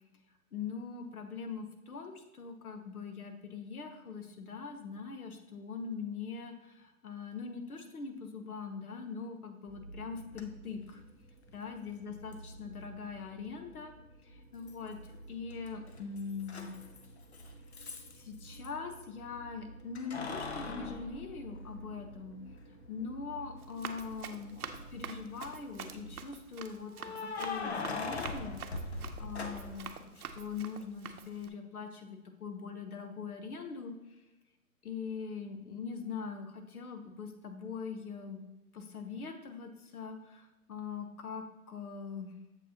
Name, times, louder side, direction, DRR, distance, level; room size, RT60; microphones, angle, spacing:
voice 1, 0.5-11.0 11.5-13.9 14.2-15.0 15.3-16.7 18.2-22.4 22.9-24.6 24.9-33.9 34.8-38.4 38.7-42.3, left 5 dB, 75° left, 6 dB, 1.1 m, -42 dB
sound 1, 9.7-26.2, right 2 dB, 30° left, 2.1 m, -52 dB
Keys jangling, 10.3-10.4 12.3-12.4 14.7-15.2 15.5-18.7 20.0-22.1 22.6-22.7 24.4-25.0 26.9-29.9, left 3 dB, 45° left, 0.5 m, -40 dB
Run, 23.6-31.5, right 7 dB, 75° right, 0.7 m, -47 dB
7.0 x 4.6 x 2.9 m, 1.0 s
hypercardioid pair, 180°, 45 cm